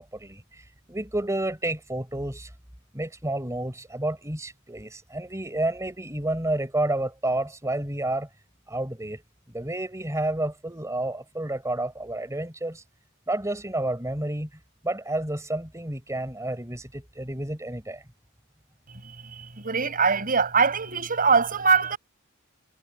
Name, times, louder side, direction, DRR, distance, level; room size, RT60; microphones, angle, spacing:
voice 1, 0.0-2.5 2.9-8.3 8.7-9.2 9.5-12.8 13.3-18.0, right 1 dB, 15° right, 4.5 m, -30 dB
voice 2, 19.4-22.0, right 5 dB, 40° right, 5.6 m, -22 dB
head